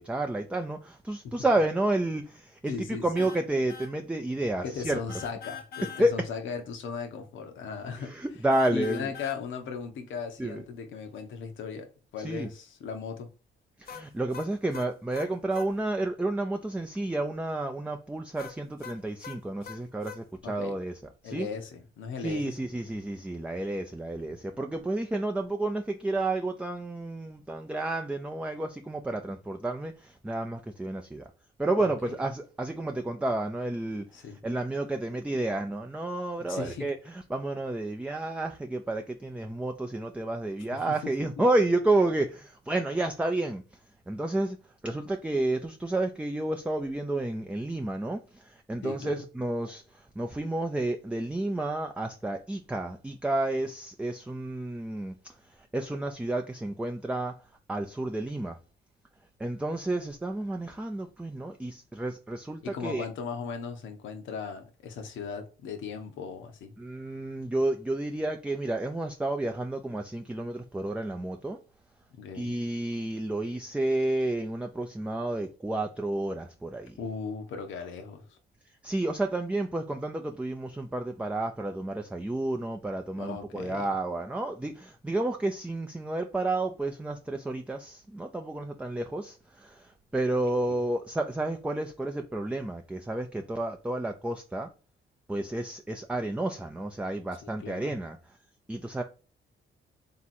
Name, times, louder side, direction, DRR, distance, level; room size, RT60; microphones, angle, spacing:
voice 1, 0.0-2.7 3.0-5.0 6.0-6.1 8.0-9.1 10.4-10.6 12.2-12.5 13.8-20.9 21.2-21.5 22.2-31.2 31.6-34.1 34.4-43.6 44.1-44.6 44.8-49.8 50.2-55.3 55.7-57.3 57.7-58.6 59.4-63.1 66.8-71.6 72.3-77.0 78.8-94.7 95.3-98.2 98.7-99.0, right 2 dB, 5° right, 0.4 m, -31 dB
voice 2, 2.6-3.3 4.6-8.2 8.7-13.3 20.4-20.8 21.2-22.7 24.3-24.4 31.8-32.1 34.1-34.4 36.4-36.9 40.7-41.1 48.8-49.2 62.6-66.7 72.2-72.6 77.0-78.4 83.2-83.9 90.7-90.8 97.4-97.9, left 6 dB, 75° left, 0.9 m, -37 dB
sound 1, 3.2-3.4 3.7-3.9 5.1-6.1 8.5-9.4 13.9-15.7 18.4-20.2, left 7 dB, 50° left, 0.6 m, -43 dB
3.6 x 2.9 x 4.2 m
cardioid pair, 90°, 20 cm